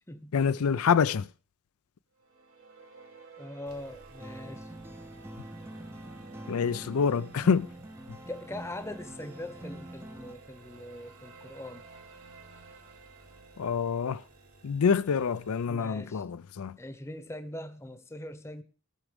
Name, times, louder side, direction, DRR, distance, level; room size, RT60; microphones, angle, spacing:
voice 1, 0.3-1.3 6.5-7.7 13.6-14.2 14.6-16.8, left 6 dB, 85° left, 0.4 m, -26 dB
sound 1, 2.2-14.6, right 4 dB, 65° right, 2.0 m, -53 dB
voice 2, 3.4-4.7 8.3-11.9 15.7-16.2 16.8-18.6, left 1 dB, 10° left, 0.8 m, -42 dB
sound 2, 3.7-15.7, right 1 dB, 85° right, 2.6 m, -57 dB
sound 3, 4.2-10.3, right 1 dB, 10° right, 0.5 m, -45 dB
18.5 x 6.2 x 5.1 m
head